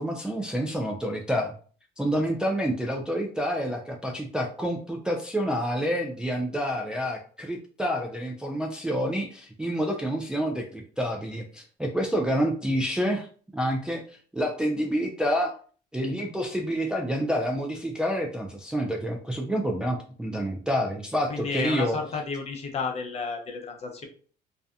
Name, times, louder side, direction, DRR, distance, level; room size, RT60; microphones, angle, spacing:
voice 1, 0.0-1.5 2.0-13.3 13.5-14.0 14.3-15.6 15.9-22.0, equal, 5° right, 0 dB, 0.3 m, -28 dB
voice 2, 21.3-24.1, left 4 dB, 40° left, 3 dB, 0.6 m, -32 dB
2.6 x 2.1 x 2.3 m, 0.43 s
cardioid pair, 110°, 17 cm